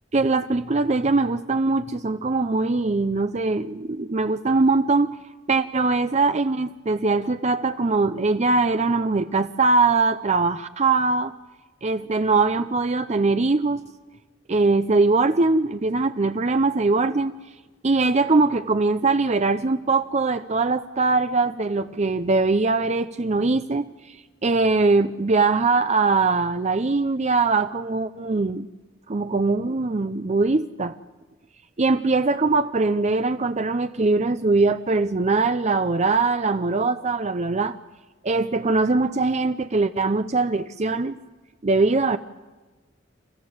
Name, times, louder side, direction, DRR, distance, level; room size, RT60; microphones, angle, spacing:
voice 1, 0.1-5.2 5.5-11.3 11.8-13.8 14.5-17.3 17.8-24.2 24.4-28.7 29.1-31.0 31.8-37.8 38.2-41.2 41.6-42.2, right 3 dB, 35° right, 11 dB, 0.6 m, -21 dB
30.0 x 14.5 x 7.8 m, 1.2 s
head